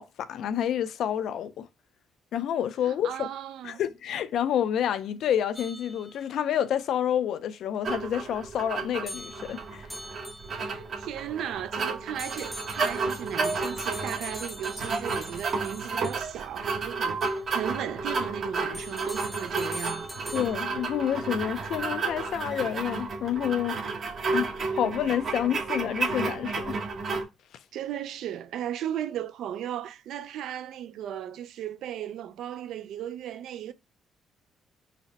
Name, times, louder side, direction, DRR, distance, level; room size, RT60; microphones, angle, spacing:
voice 1, 0.0-1.7 2.3-3.3 3.6-9.9 20.3-23.8 24.3-26.8, left 9 dB, 75° left, 0.3 m, -29 dB
voice 2, 2.8-3.8 10.5-20.4 27.7-33.7, right 10 dB, 80° right, 0.3 m, -36 dB
sound 1, 5.5-6.5 9.1-10.8 12.2-16.5 17.2-17.4 18.7-20.9, left 1 dB, ahead, 0.6 m, -42 dB
sound 2, 7.8-27.2, right 4 dB, 55° right, 1.0 m, -32 dB
4.0 x 2.0 x 4.0 m
cardioid pair, 90°, 0 cm